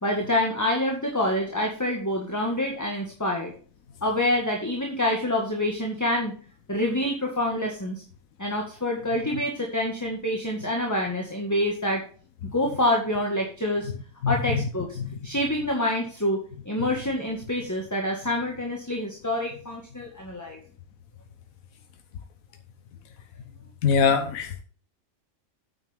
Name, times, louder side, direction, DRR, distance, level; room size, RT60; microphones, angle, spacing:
voice 1, 0.0-3.5 4.0-6.3 6.7-8.0 8.4-12.0 12.5-13.9 14.3-15.0 15.2-20.6, left 1 dB, 10° left, 1.8 m, -27 dB
voice 2, 14.2-14.6 23.8-24.6, left 6 dB, 75° left, 1.3 m, -22 dB
9.1 x 8.5 x 3.6 m
omnidirectional pair, 1.4 m